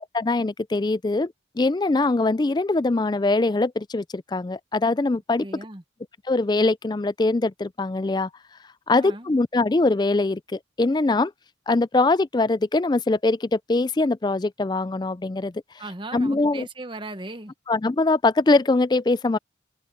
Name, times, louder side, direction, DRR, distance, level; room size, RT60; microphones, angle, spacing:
voice 1, 0.1-5.5 6.3-8.3 8.9-11.3 11.7-15.5 16.1-16.7 17.7-19.4, left 2 dB, 20° left, 0.4 m, -22 dB
voice 2, 5.4-5.8 9.0-9.3 15.8-17.5, right 2 dB, 25° right, 1.2 m, -37 dB
open air
head